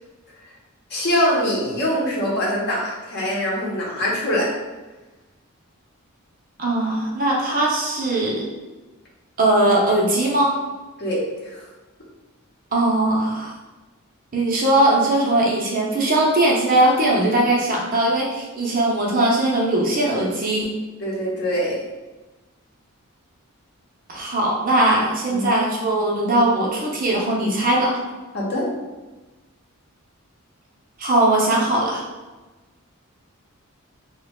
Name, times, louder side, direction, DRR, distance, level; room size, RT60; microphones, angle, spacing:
voice 1, 0.9-4.5 11.0-11.6 21.0-21.8 25.3-25.5 28.3-28.7, equal, 50° left, -4 dB, 0.9 m, -23 dB
voice 2, 6.6-8.5 9.4-10.5 12.7-13.5 14.3-20.7 24.1-28.0 31.0-32.0, right 1 dB, 40° right, -2 dB, 0.7 m, -20 dB
3.1 x 2.2 x 3.6 m, 1.2 s
head